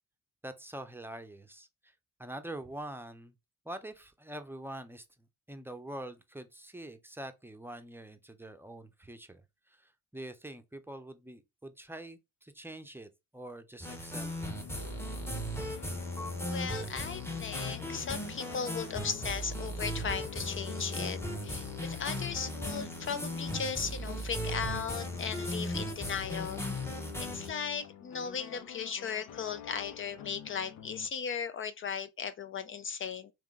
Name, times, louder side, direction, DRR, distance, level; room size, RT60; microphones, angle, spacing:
voice 1, 0.4-1.7 2.2-3.3 3.7-5.0 5.5-9.4 10.1-14.5, right 1 dB, 5° right, 0.6 m, -44 dB
sound 1, 13.8-27.5, equal, 10° left, 1.0 m, -37 dB
sound 2, 14.4-31.1, left 10 dB, 80° left, 0.7 m, -47 dB
voice 2, 16.4-33.3, left 6 dB, 45° left, 0.4 m, -37 dB
3.6 x 3.2 x 3.6 m
cardioid pair, 90°, 30 cm